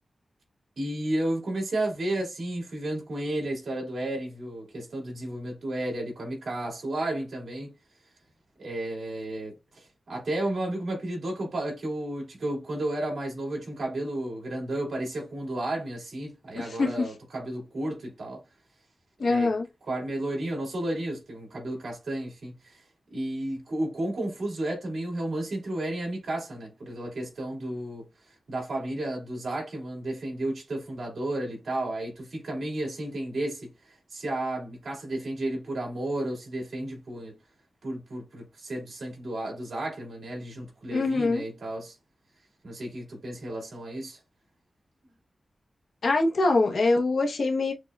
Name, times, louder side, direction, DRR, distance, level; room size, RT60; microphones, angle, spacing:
voice 1, 0.8-7.7 8.6-18.4 19.2-19.5 19.8-22.8 23.1-37.3 37.8-42.0 42.6-44.2, right 1 dB, 80° right, 2.5 m, -32 dB
voice 2, 16.5-17.1 19.2-19.7 40.9-41.4 46.0-47.7, left 3 dB, 75° left, 0.9 m, -24 dB
6.6 x 2.2 x 2.3 m
wide cardioid pair, 150°, 0 cm